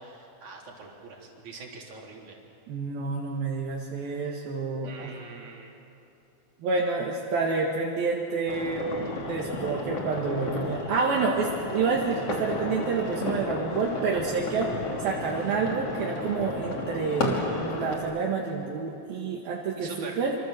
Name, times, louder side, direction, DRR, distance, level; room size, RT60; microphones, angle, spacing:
voice 1, 0.0-2.4 4.8-5.7 19.8-20.2, right 4 dB, 50° right, -1 dB, 4.7 m, -43 dB
voice 2, 2.7-5.1 6.6-8.9 9.3-20.4, right 4 dB, 70° right, -2 dB, 3.6 m, -28 dB
sound 1, 8.5-18.0, left 2 dB, 40° left, 3.9 m, -33 dB
26.5 x 26.5 x 7.8 m, 2.8 s
omnidirectional pair, 4.4 m